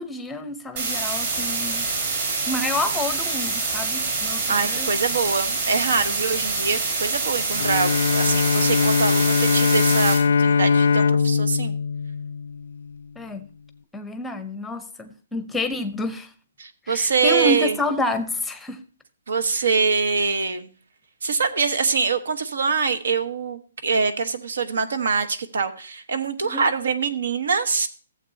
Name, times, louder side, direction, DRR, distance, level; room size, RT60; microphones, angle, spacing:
voice 1, 0.0-1.8 2.5-4.9 13.2-13.4 13.9-16.3 16.9-18.8 26.4-26.6, left 2 dB, 5° left, 0.7 m, -28 dB
sound 1, 0.8-10.2, right 4 dB, 45° right, 4.3 m, -26 dB
voice 2, 4.5-11.8 16.6-17.8 19.3-20.7 21.2-27.9, right 5 dB, 75° right, 1.2 m, -24 dB
Bowed string instrument, 7.6-13.0, left 5 dB, 75° left, 0.3 m, -21 dB
15.5 x 7.6 x 2.8 m
hypercardioid pair, 165°, 0 cm